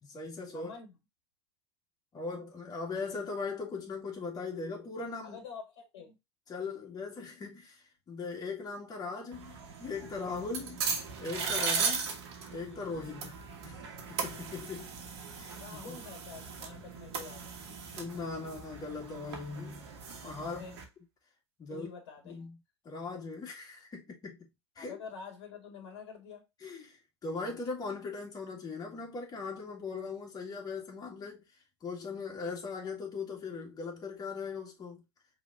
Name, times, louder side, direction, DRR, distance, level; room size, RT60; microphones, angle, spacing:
voice 1, 0.0-0.7 2.1-5.4 6.5-10.8 11.2-12.1 12.5-14.9 15.3-16.0 17.7-19.9 20.2-20.6 21.6-21.9 22.2-22.6 22.8-24.5 24.8-25.0 26.6-31.4 31.8-35.0, left 4 dB, 25° left, 2.2 m, -39 dB
voice 2, 0.5-0.9 5.2-6.2 15.6-17.5 20.4-20.8 21.7-22.5 24.8-26.5, left 6 dB, 65° left, 1.6 m, -47 dB
sound 1, 9.3-20.8, right 5 dB, 65° right, 1.5 m, -38 dB
5.0 x 3.7 x 2.6 m
hypercardioid pair, 90°, 14 cm